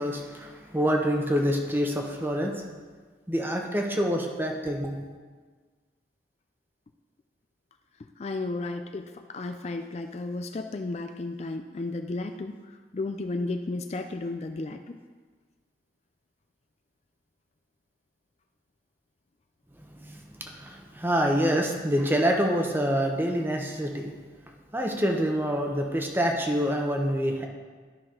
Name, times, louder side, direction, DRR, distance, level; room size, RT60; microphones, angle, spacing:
voice 1, 0.0-2.6 3.3-5.0 20.0-24.1 24.7-27.5, equal, 10° right, 2 dB, 0.8 m, -26 dB
voice 2, 8.2-12.6 12.9-15.0, left 2 dB, 35° left, 6 dB, 0.3 m, -33 dB
12.5 x 5.8 x 3.8 m, 1.5 s
head